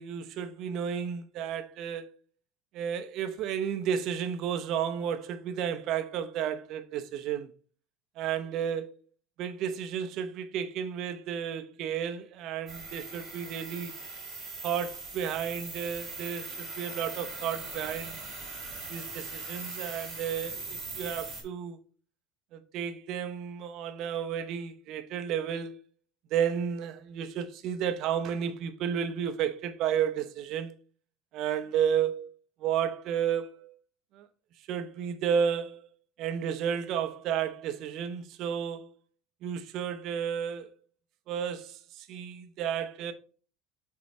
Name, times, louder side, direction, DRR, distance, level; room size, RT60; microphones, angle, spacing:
voice 1, 0.0-2.1 2.7-7.5 8.2-8.9 9.4-13.9 14.6-18.2 18.9-21.8 22.5-25.8 26.3-30.7 31.3-32.3 32.6-33.7 34.1-34.2 34.7-35.8 36.2-38.9 39.4-40.7 41.3-43.1, right 8 dB, 45° right, 0.8 m, -32 dB
sound 1, 12.7-21.4, right 3 dB, 10° right, 2.6 m, -40 dB
6.8 x 4.7 x 3.2 m
cardioid pair, 160°, 0 cm